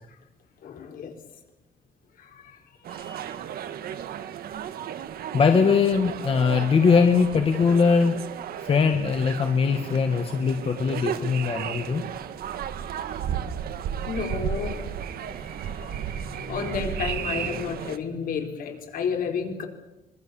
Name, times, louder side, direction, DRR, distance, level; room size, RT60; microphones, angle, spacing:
voice 1, 0.6-1.2 2.2-2.6 2.9-3.3 14.1-14.9 15.3-15.5 15.8-19.7, left 6 dB, 70° left, 3 dB, 4.9 m, -32 dB
sound 1, 2.8-18.0, right 9 dB, 85° right, 1.7 m, -34 dB
voice 2, 5.3-8.2 8.6-12.0, left 5 dB, 40° left, 5 dB, 1.8 m, -21 dB
25.5 x 23.5 x 7.2 m, 0.98 s
cardioid pair, 165°, 15 cm